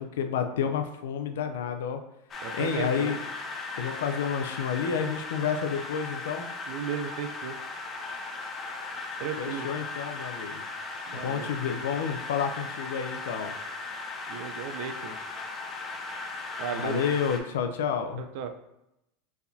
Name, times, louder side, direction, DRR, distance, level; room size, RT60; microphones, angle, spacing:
voice 1, 0.0-2.0 2.5-3.2 3.8-6.5 9.4-10.6 11.2-13.5 16.8-18.2, left 7 dB, 80° left, 7 dB, 0.5 m, -30 dB
sound 1, 2.3-17.4, left 3 dB, 30° left, 0.9 m, -37 dB
voice 2, 2.4-3.1 6.7-7.5 9.2-9.7 11.1-11.5 14.3-15.2 16.6-17.0 18.2-18.5, right 7 dB, 65° right, 7 dB, 0.5 m, -35 dB
4.6 x 3.5 x 2.7 m, 0.86 s
hypercardioid pair, 105°, 0 cm